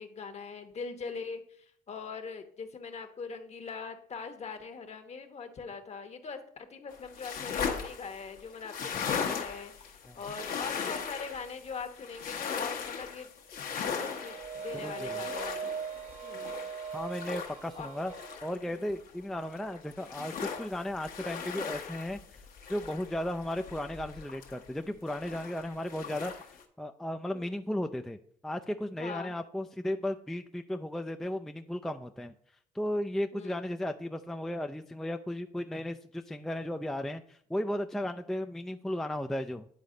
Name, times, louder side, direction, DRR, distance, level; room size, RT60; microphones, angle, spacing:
voice 1, 0.0-13.3 13.8-14.4 14.6-15.7 16.2-16.7 17.7-17.9 18.6-18.9 27.3-27.6 29.0-29.3 33.3-33.7, left 5 dB, 40° left, 7 dB, 1.1 m, -42 dB
sound 1, 6.9-19.1 19.4-24.8 25.1-26.6, left 6 dB, 65° left, 1.1 m, -38 dB
sound 2, 13.6-18.4, right 6 dB, 55° right, 1.4 m, -41 dB
voice 2, 14.8-15.2 16.9-18.1 18.4-22.2 22.7-28.2 28.4-32.3 32.7-39.7, left 1 dB, 5° left, 6 dB, 0.4 m, -35 dB
9.8 x 4.1 x 3.8 m, 0.62 s
supercardioid pair, 75°, 16 cm